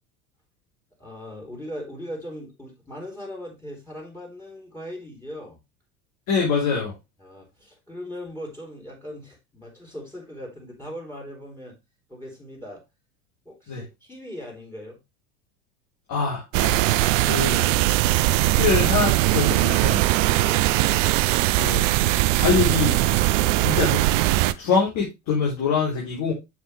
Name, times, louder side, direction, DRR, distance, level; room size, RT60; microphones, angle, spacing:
voice 1, 1.0-5.6 7.2-11.8 12.1-12.8 13.4-15.0 17.4-18.6 20.3-20.7 23.3-23.6, equal, 5° left, 3.4 m, -39 dB
voice 2, 6.3-6.9 13.7-13.8 16.1-16.8 17.2-17.6 18.4-20.0 21.5-21.8 22.3-23.0 23.6-24.1 24.6-26.3, left 5 dB, 55° left, 3.6 m, -24 dB
sound 1, 16.5-24.5, right 17 dB, 65° right, 0.6 m, -20 dB
7.2 x 6.1 x 3.2 m
hypercardioid pair, 85°, 41 cm